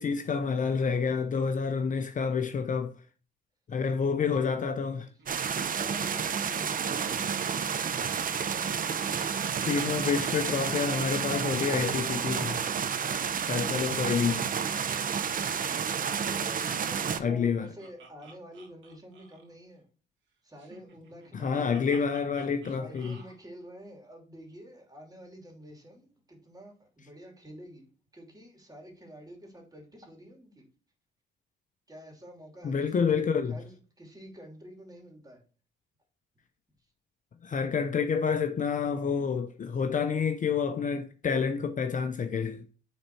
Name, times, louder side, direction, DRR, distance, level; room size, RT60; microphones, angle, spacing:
voice 1, 0.0-2.9 3.7-5.0 8.6-9.0 9.6-12.6 13.5-14.4 17.2-17.7 21.3-23.1 32.6-33.6 37.4-42.7, left 6 dB, 40° left, 0.7 m, -28 dB
voice 2, 4.0-4.8 5.7-7.4 16.0-19.9 20.4-21.9 22.8-30.6 31.9-35.4, equal, 20° right, 2.8 m, -48 dB
Laughter, 4.9-7.8 8.1-10.2 10.5-10.6 10.8-11.0 12.3-14.6 14.9-15.0 15.3-15.6 16.7-19.5 20.6-23.3, right 4 dB, 75° right, 2.6 m, -53 dB
sound 1, 5.3-17.2, right 7 dB, 45° right, 0.7 m, -30 dB
9.7 x 4.0 x 4.5 m
cardioid pair, 90°, 20 cm